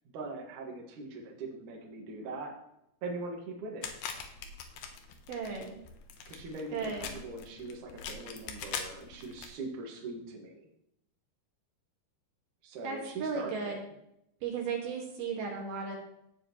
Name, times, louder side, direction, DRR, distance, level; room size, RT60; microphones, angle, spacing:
voice 1, 0.1-2.6 3.0-4.0 6.3-10.7 12.6-13.8, right 3 dB, 55° right, -1 dB, 3.0 m, -41 dB
sound 1, 3.8-9.5, left 6 dB, 75° left, 2.9 m, -43 dB
voice 2, 5.3-5.8 6.7-7.1 12.8-13.8 14.4-15.9, right 5 dB, 70° right, -1 dB, 3.7 m, -35 dB
16.5 x 7.8 x 3.1 m, 0.79 s
omnidirectional pair, 4.6 m